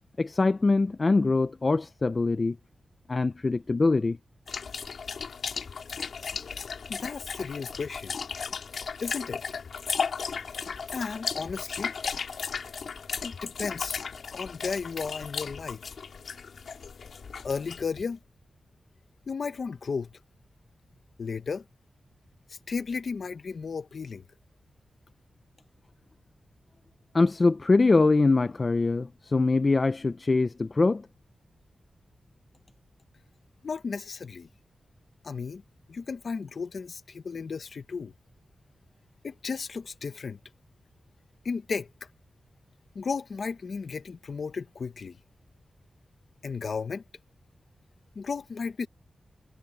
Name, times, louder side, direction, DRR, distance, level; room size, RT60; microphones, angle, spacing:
voice 1, 0.2-2.6 3.1-4.2 27.1-31.1, left 3 dB, 30° left, 0.4 m, -23 dB
sound 1, 4.5-18.0, left 5 dB, 75° left, 1.9 m, -35 dB
voice 2, 6.9-8.2 9.0-9.4 10.9-11.9 13.2-14.0 14.3-15.8 17.4-18.2 19.3-20.1 21.2-21.6 22.5-24.2 33.6-34.5 35.2-35.6 35.9-38.1 39.2-40.4 41.4-41.9 42.9-45.2 46.4-47.0 48.1-48.9, left 5 dB, 55° left, 1.0 m, -34 dB
wide cardioid pair, 155°, 0 cm